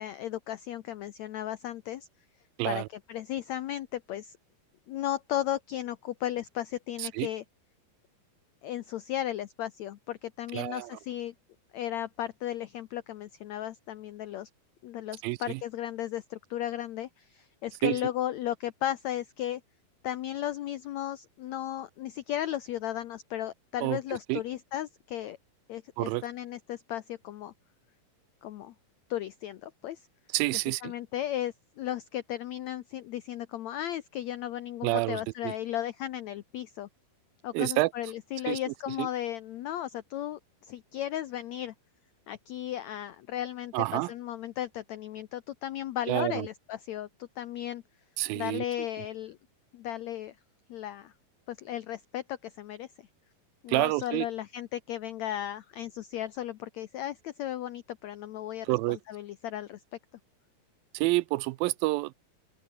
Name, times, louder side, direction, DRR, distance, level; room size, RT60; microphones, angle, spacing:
voice 1, 0.0-2.1 2.6-2.8 3.1-4.3 4.9-7.4 8.6-11.3 11.7-14.5 14.8-19.6 20.0-25.4 25.7-27.5 28.4-28.7 29.1-30.0 30.8-36.9 37.4-40.4 40.7-41.7 42.3-47.8 48.3-49.4 49.7-50.3 50.7-51.1 51.5-52.9 53.6-59.8, left 12 dB, 80° left, 1.6 m, -35 dB
voice 2, 10.5-10.9 15.2-15.6 17.8-18.0 23.8-24.0 24.3-24.4 26.0-26.2 30.3-30.9 34.8-35.5 37.5-37.9 38.5-38.6 39.0-39.1 43.7-44.1 46.1-46.5 48.2-48.6 53.7-54.3 58.7-59.0 60.9-62.1, right 21 dB, 80° right, 2.2 m, -28 dB
open air
omnidirectional pair, 4.3 m